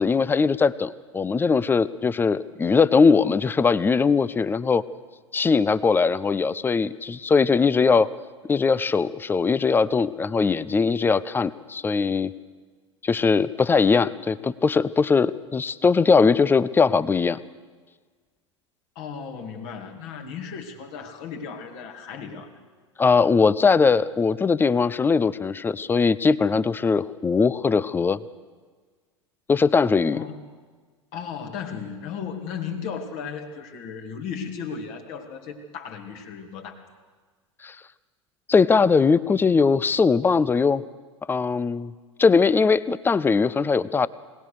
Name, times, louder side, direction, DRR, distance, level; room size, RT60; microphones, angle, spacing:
voice 1, 0.0-4.8 5.3-8.1 8.5-12.3 13.0-17.4 23.0-28.2 29.5-30.2 37.6-37.8 38.5-40.8 41.3-41.9 42.2-44.1, left 5 dB, 15° left, 18 dB, 0.6 m, -20 dB
voice 2, 19.0-22.5 30.1-30.4 31.1-36.8, left 6 dB, 50° left, 4 dB, 2.5 m, -35 dB
21.0 x 18.5 x 6.6 m, 1.5 s
figure-of-eight pair, 80°, 15 cm